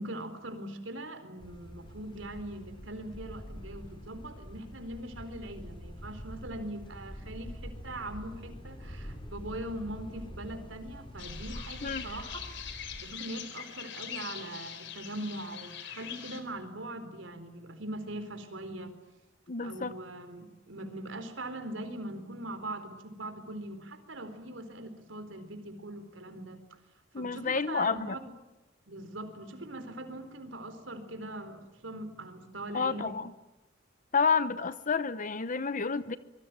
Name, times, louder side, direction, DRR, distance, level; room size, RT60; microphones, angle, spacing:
voice 1, 0.0-12.4 13.0-18.9 19.6-26.6 27.2-28.3 28.9-33.1, right 1 dB, 75° right, 9 dB, 4.2 m, -41 dB
sound 1, 1.4-13.0, equal, 25° left, 5.4 m, -45 dB
sound 2, 11.2-16.4, left 9 dB, 65° left, 3.9 m, -43 dB
voice 2, 19.5-19.9 27.1-28.2 32.7-33.3 34.1-36.2, left 5 dB, 40° left, 14 dB, 0.9 m, -29 dB
25.5 x 23.0 x 9.2 m, 1.1 s
head